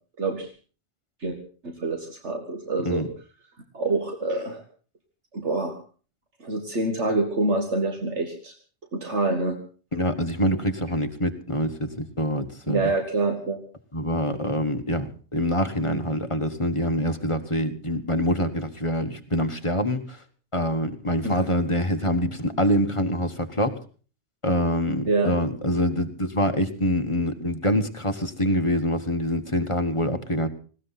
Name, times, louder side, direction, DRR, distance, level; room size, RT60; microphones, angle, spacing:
voice 1, 0.2-0.5 1.2-1.4 1.6-3.1 3.7-4.6 5.3-5.8 6.4-8.5 8.9-9.6 12.7-13.6 21.2-21.4 25.1-25.3, right 3 dB, 75° right, 4 dB, 2.3 m, -26 dB
voice 2, 9.9-12.9 13.9-20.2 20.5-23.8 24.4-30.5, left 1 dB, 25° left, 7 dB, 1.4 m, -25 dB
19.5 x 17.5 x 4.1 m, 0.39 s
omnidirectional pair, 1.2 m